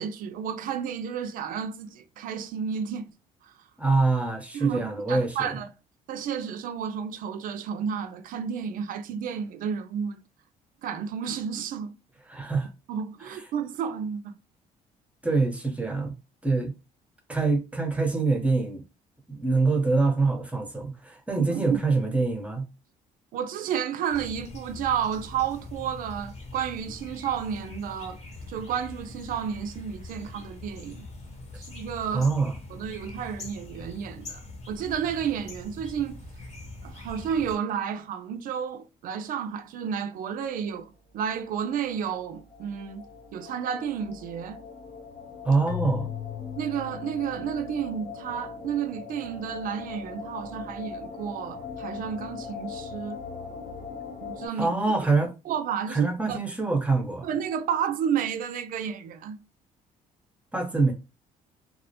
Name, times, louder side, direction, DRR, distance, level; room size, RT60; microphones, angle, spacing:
voice 1, 0.0-3.1 3.4-3.5 4.5-5.7 6.1-10.2 10.8-11.9 12.9-14.3 21.4-21.6 23.3-28.2 28.5-31.0 31.6-32.3 32.7-36.2 36.8-43.0 43.3-44.6 46.6-53.2 54.2-54.7 55.5-56.4 57.2-59.4, right 8 dB, 65° right, 0.4 m, -31 dB
voice 2, 3.8-5.5 12.3-12.7 13.3-13.4 15.2-16.1 16.4-16.7 17.3-18.8 19.3-22.7 32.1-32.5 45.4-46.1 54.6-55.3 55.9-57.3 60.5-60.9, right 3 dB, 10° right, 0.7 m, -25 dB
sound 1, 24.1-37.6, left 2 dB, 50° left, 0.9 m, -43 dB
sound 2, 41.3-54.5, left 5 dB, 85° left, 1.3 m, -41 dB
Keyboard (musical), 45.7-47.9, left 12 dB, 65° left, 0.4 m, -36 dB
2.3 x 2.1 x 2.7 m
cardioid pair, 90°, 15 cm